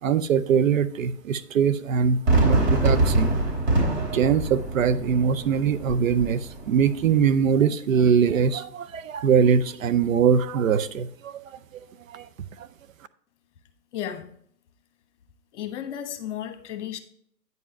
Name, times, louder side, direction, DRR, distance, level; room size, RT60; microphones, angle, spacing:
voice 1, 0.0-3.3 4.1-11.6 12.1-12.3 12.6-12.7, right 7 dB, 55° right, 0.6 m, -22 dB
Fireworks, 2.3-7.3, right 2 dB, 40° right, 3.5 m, -24 dB
voice 2, 13.9-14.3 15.5-17.0, left 10 dB, 45° left, 1.3 m, -33 dB
9.4 x 5.2 x 4.5 m
figure-of-eight pair, 125°, 48 cm